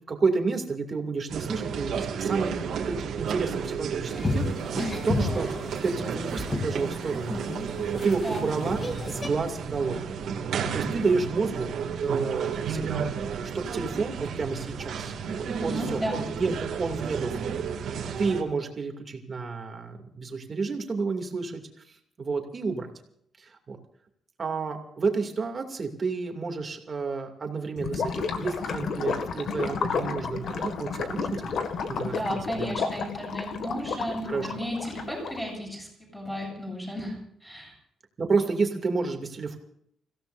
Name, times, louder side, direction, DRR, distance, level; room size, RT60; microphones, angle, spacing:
voice 1, 0.1-2.6 2.8-4.4 4.7-5.5 5.8-7.4 8.0-8.8 9.1-10.1 10.7-11.7 12.0-13.1 13.5-17.3 18.2-21.6 22.2-22.9 23.4-23.8 24.4-31.5 31.9-32.7 34.3-34.5 38.2-39.6, right 4 dB, 35° right, 4 dB, 2.6 m, -30 dB
sound 1, 1.3-18.4, right 7 dB, 70° right, 2.3 m, -32 dB
sound 2, 4.1-9.3, left 2 dB, 25° left, 2.8 m, -32 dB
voice 2, 15.5-16.2 32.1-37.7, equal, ahead, -2 dB, 7.9 m, -34 dB
Gurgling / Liquid, 27.8-35.5, left 5 dB, 60° left, 1.9 m, -32 dB
30.0 x 16.5 x 2.6 m, 0.70 s
cardioid pair, 145°, 0 cm